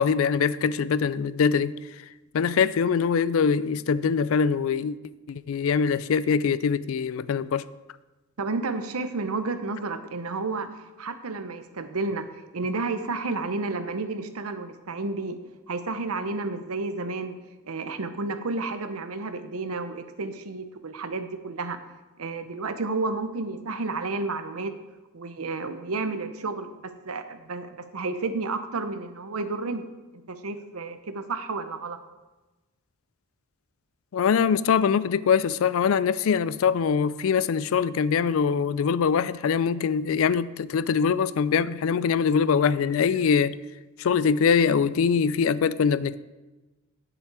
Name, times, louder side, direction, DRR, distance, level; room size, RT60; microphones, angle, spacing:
voice 1, 0.0-1.8 2.3-5.0 5.3-7.6 34.1-43.6 44.0-46.2, left 6 dB, 70° left, 17 dB, 0.3 m, -23 dB
voice 2, 8.4-12.3 12.5-15.4 15.7-17.4 17.6-21.8 22.2-24.7 25.1-29.8 30.3-32.0, right 3 dB, 85° right, 10 dB, 0.8 m, -31 dB
9.9 x 7.0 x 4.7 m, 1.1 s
head